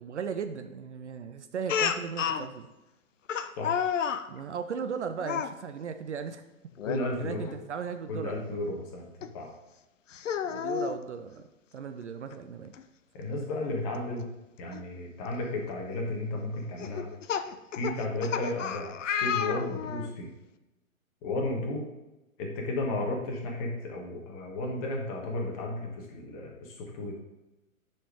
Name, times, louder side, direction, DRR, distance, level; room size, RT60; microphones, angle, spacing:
voice 1, 0.0-2.7 4.3-6.4 7.2-8.6 10.4-11.5 11.7-12.8 21.4-21.6, right 6 dB, 55° right, 9 dB, 0.6 m, -37 dB
Speech, 1.7-2.5 3.3-4.3 5.2-5.5 6.8-7.0 7.4-7.5 9.2-9.3 10.1-11.0 12.3-12.4 12.7-12.8 14.7-14.8 15.4-15.7 16.8-20.1, left 8 dB, 60° left, 0.5 m, -31 dB
voice 2, 6.8-7.5 8.1-9.1 9.3-9.5 13.1-14.2 14.6-17.1 17.3-17.4 17.7-20.3 21.2-21.8 22.4-27.1, left 2 dB, 25° left, 0 dB, 1.3 m, -33 dB
6.6 x 4.3 x 4.8 m, 0.99 s
figure-of-eight pair, 125°, 42 cm